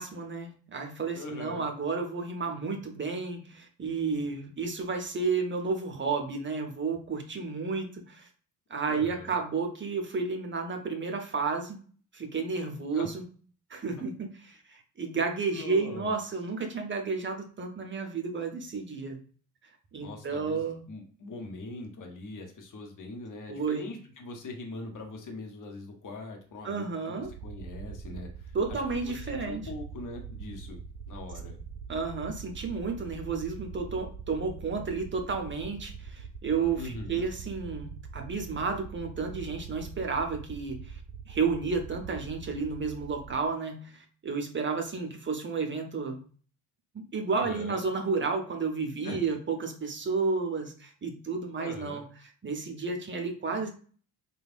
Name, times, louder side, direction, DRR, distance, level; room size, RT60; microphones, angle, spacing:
voice 1, 0.0-8.3 8.7-11.8 12.1-13.2 13.7-19.2 19.9-20.8 23.5-23.9 26.6-27.3 28.5-29.6 31.9-41.0 41.3-46.2 46.9-52.0 52.4-53.7, right 4 dB, 25° right, 4 dB, 0.7 m, -32 dB
voice 2, 1.1-1.7 8.9-9.4 12.9-13.1 15.5-16.1 20.0-30.8 31.1-31.6 36.8-37.3 47.3-47.8 49.0-49.2 51.6-52.0, left 2 dB, 40° left, 3 dB, 1.0 m, -42 dB
sound 1, 27.2-43.4, right 6 dB, 75° right, 0.6 m, -43 dB
3.2 x 2.3 x 2.5 m, 0.42 s
figure-of-eight pair, 45°, 49 cm